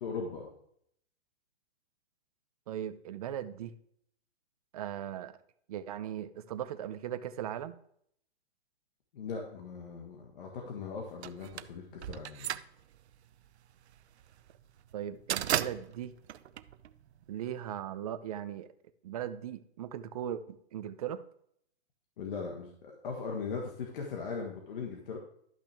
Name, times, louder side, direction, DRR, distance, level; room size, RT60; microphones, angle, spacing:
voice 1, 0.0-0.5 9.1-12.5 22.2-25.2, left 5 dB, 55° left, 0 dB, 1.6 m, -39 dB
voice 2, 2.7-3.7 4.7-5.3 5.7-7.8 14.9-16.1 17.3-18.7 19.0-21.2, right 10 dB, 35° right, 11 dB, 0.6 m, -38 dB
sound 1, 11.2-17.4, right 11 dB, 85° right, 0.6 m, -36 dB
12.0 x 5.8 x 3.4 m, 0.68 s
hypercardioid pair, 160°, 32 cm